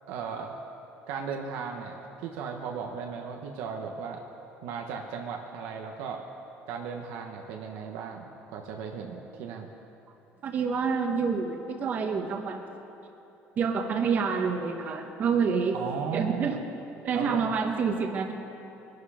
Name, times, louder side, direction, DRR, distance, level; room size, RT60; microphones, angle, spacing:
voice 1, 0.1-0.6 1.1-4.2 4.6-6.2 6.7-9.7 15.7-16.6 17.1-17.4, right 6 dB, 80° right, 1 dB, 1.2 m, -36 dB
voice 2, 10.4-12.6 13.6-15.8 16.1-16.5 17.0-18.3, right 5 dB, 35° right, 4 dB, 1.1 m, -27 dB
22.0 x 12.0 x 5.0 m, 3.0 s
cardioid pair, 165°, 5 cm